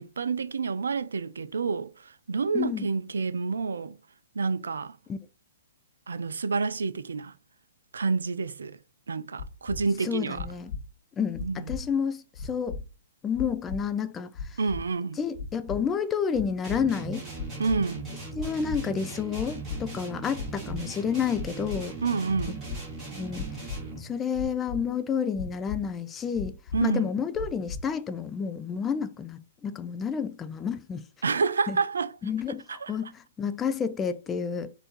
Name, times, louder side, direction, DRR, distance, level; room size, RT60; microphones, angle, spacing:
voice 1, 0.0-4.0 4.3-5.0 6.1-7.3 7.9-8.8 9.1-10.5 11.4-11.7 14.6-15.2 17.6-18.0 22.0-22.7 26.7-27.1 31.2-32.1 32.7-32.9, right 4 dB, 70° right, 0.4 m, -28 dB
voice 2, 2.5-2.9 5.1-5.2 10.0-10.7 11.2-12.8 13.2-14.6 15.2-17.2 18.4-21.9 23.1-23.5 23.9-31.0 31.7-31.8 32.2-34.7, left 7 dB, 15° left, 0.4 m, -30 dB
sound 1, 9.4-9.8 10.3-10.8 11.3-11.8 12.3-12.8 13.3-13.8 14.3-14.8 15.3-15.8 16.3-16.8 17.3-17.8 18.3-18.8 19.3-19.8 20.3-20.8 21.3-21.8 22.3-22.8 23.3-23.8 24.3-24.8 25.3-25.8 26.3-26.8 27.3-27.8, left 5 dB, 55° left, 1.0 m, -35 dB
sound 2, 16.6-24.1, right 3 dB, 20° right, 2.0 m, -39 dB
4.3 x 2.6 x 4.3 m
figure-of-eight pair, 120°, 0 cm